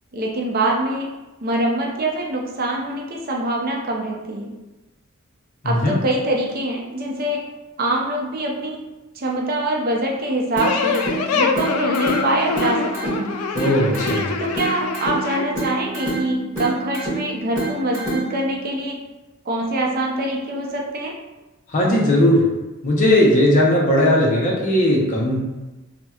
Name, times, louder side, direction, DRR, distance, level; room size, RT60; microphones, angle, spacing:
voice 1, 0.1-1.1 1.4-4.5 5.6-7.4 7.8-8.8 9.1-11.0 11.3-13.3 14.4-19.0 19.5-21.1, right 1 dB, 45° right, -1 dB, 0.5 m, -24 dB
voice 2, 5.6-6.0 13.5-14.3 21.7-22.4 22.8-25.4, left 1 dB, 35° left, -3 dB, 0.6 m, -17 dB
sound 1, 10.6-15.4, left 5 dB, 85° left, 0.3 m, -24 dB
sound 2, 10.6-18.6, right 2 dB, 10° right, 1.4 m, -28 dB
4.1 x 2.1 x 2.3 m, 1.1 s
head